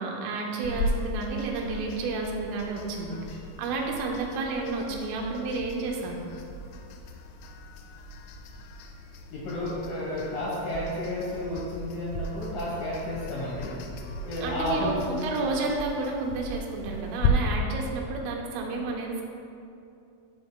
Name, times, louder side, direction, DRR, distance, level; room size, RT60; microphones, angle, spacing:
voice 1, 0.0-6.2 14.4-19.2, right 3 dB, 90° right, -1 dB, 3.5 m, -31 dB
sound 1, 0.6-17.3, left 3 dB, 85° left, 3.1 m, -37 dB
voice 2, 9.3-13.7 14.2-14.9, left 1 dB, 70° left, -7 dB, 2.1 m, -32 dB
15.5 x 6.1 x 2.2 m, 2.6 s
omnidirectional pair, 5.5 m